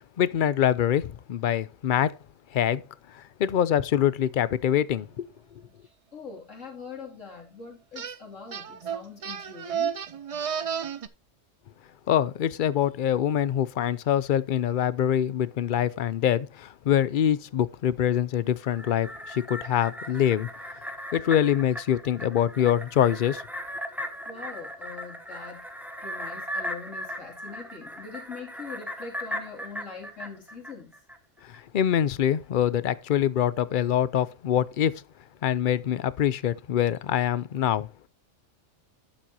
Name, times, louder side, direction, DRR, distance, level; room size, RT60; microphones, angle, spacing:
voice 1, 0.2-2.1 2.5-2.8 3.4-5.3 12.1-20.5 21.1-23.4 31.7-35.0 35.4-37.9, left 10 dB, 55° left, 0.6 m, -24 dB
voice 2, 6.1-10.0 24.2-25.6 26.0-30.9, left 5 dB, 85° left, 3.2 m, -42 dB
sound 1, 8.0-8.2 8.5-11.1, right 7 dB, 50° right, 0.4 m, -32 dB
sound 2, 18.6-31.2 31.5-31.6, equal, ahead, 0.9 m, -38 dB
12.0 x 7.5 x 2.8 m
omnidirectional pair, 1.3 m